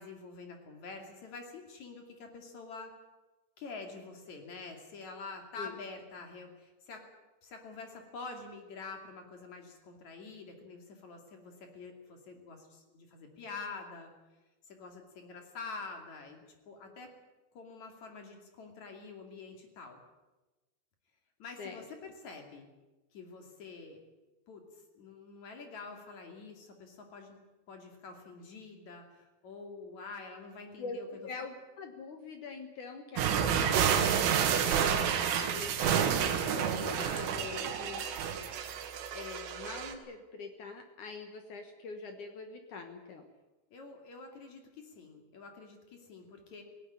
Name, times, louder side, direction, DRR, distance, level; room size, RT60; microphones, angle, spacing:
voice 1, 0.0-2.9 3.6-7.0 7.4-14.1 14.7-17.1 17.5-20.0 21.4-22.7 23.1-24.0 24.5-24.6 24.9-27.4 27.7-31.1 43.7-46.6, left 4 dB, 45° left, 4 dB, 3.3 m, -47 dB
voice 2, 30.8-35.2 35.5-38.5 39.1-43.2, left 4 dB, 65° left, 6 dB, 1.9 m, -44 dB
sound 1, 33.2-39.9, right 8 dB, 80° right, 4.3 m, -29 dB
18.5 x 17.5 x 9.8 m, 1.1 s
omnidirectional pair, 5.6 m